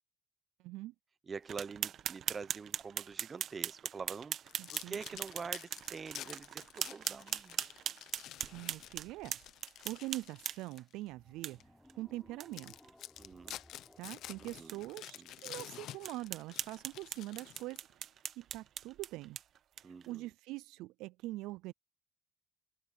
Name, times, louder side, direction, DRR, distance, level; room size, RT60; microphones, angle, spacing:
voice 1, 0.6-0.9 4.6-5.0 8.5-9.4 9.8-11.6 11.9-12.7 14.0-17.9 18.4-19.4 19.8-21.7, right 18 dB, 85° right, 0.3 m, -43 dB
voice 2, 1.3-4.4 4.7-7.6 13.2-13.6 14.4-14.8 15.1-15.3 19.8-20.3, right 5 dB, 30° right, 0.8 m, -45 dB
sound 1, 1.5-10.8 11.4-11.5 11.9-12.0 12.4-12.5 12.8-12.9 13.3-13.6 14.1-14.2 14.7-14.8 15.3-15.4 16.0-20.1, right 10 dB, 60° right, 1.2 m, -41 dB
sound 2, 4.5-10.9 11.4-11.6 12.1-12.2 12.5-18.0, left 13 dB, 70° left, 1.0 m, -50 dB
sound 3, 11.1-16.3, left 1 dB, 5° left, 4.4 m, -63 dB
open air
cardioid pair, 95°, 0 cm